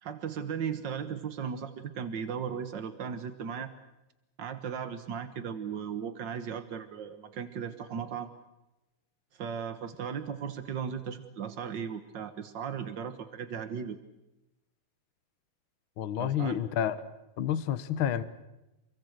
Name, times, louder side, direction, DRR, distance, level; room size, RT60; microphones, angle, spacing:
voice 1, 0.0-3.7 4.4-8.3 9.3-14.0 16.2-16.6, right 7 dB, 65° right, 10 dB, 1.1 m, -36 dB
voice 2, 16.0-17.0 17.4-18.2, left 9 dB, 65° left, 11 dB, 1.2 m, -29 dB
28.5 x 23.0 x 6.5 m, 0.95 s
omnidirectional pair, 4.0 m